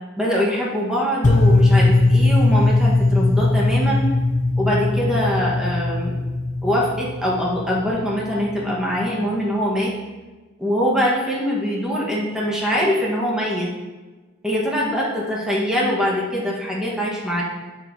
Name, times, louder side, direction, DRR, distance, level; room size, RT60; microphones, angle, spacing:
voice 1, 0.2-4.1 4.6-6.2 6.6-9.9 10.6-13.7 14.4-17.4, equal, 5° right, -5 dB, 1.4 m, -23 dB
sound 1, 1.2-9.4, left 2 dB, 35° left, 0.5 m, -20 dB
8.2 x 7.5 x 2.8 m, 1.3 s
head